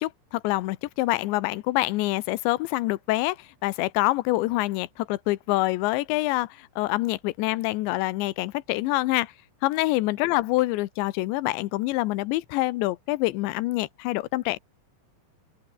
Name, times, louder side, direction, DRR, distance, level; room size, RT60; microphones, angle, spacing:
voice 1, 0.0-9.3 9.6-14.6, left 19 dB, 85° left, 3.2 m, -26 dB
open air
omnidirectional pair, 5.1 m